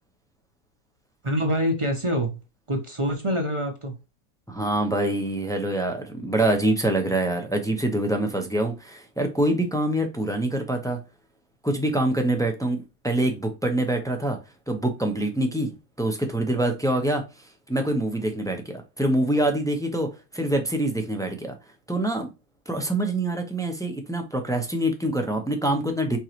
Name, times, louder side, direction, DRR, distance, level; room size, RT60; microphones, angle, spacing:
voice 1, 1.2-2.4 2.7-4.0, equal, 25° right, 0.7 m, -25 dB
voice 2, 4.5-11.0 11.6-14.4 14.7-15.7 16.0-21.6 21.9-22.3 22.7-26.2, right 1 dB, 5° left, 0.5 m, -25 dB
4.6 x 3.9 x 3.0 m
omnidirectional pair, 1.5 m